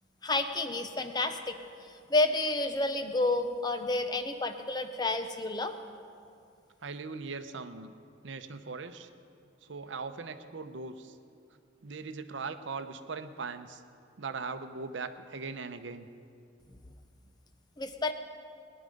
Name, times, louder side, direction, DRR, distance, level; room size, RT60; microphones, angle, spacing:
voice 1, 0.2-5.8 17.8-18.1, left 2 dB, 20° left, 7 dB, 0.6 m, -30 dB
voice 2, 6.8-7.9 8.2-9.1 9.6-11.2 11.8-13.8 14.2-16.1, right 4 dB, 75° right, 10 dB, 0.7 m, -40 dB
18.5 x 10.5 x 5.2 m, 2.4 s
head